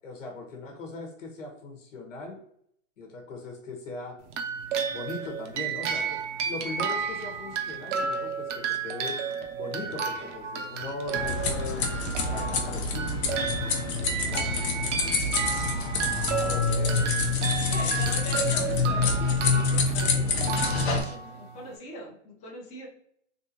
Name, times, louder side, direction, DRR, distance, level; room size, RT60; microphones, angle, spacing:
voice 1, 0.0-2.4 3.0-4.2 4.9-9.2 9.5-11.9 12.2-13.5 14.2-14.5 15.5-17.3 17.7-18.2, left 3 dB, 70° left, 1 dB, 1.2 m, -39 dB
sound 1, 4.3-21.7, right 6 dB, 65° right, 0.7 m, -32 dB
sound 2, 11.1-21.0, left 4 dB, 55° left, 0.9 m, -27 dB
voice 2, 13.5-14.7 15.1-15.7 17.7-22.9, left 1 dB, 15° left, -2 dB, 0.7 m, -43 dB
3.4 x 2.7 x 2.8 m, 0.68 s
hypercardioid pair, 150°, 39 cm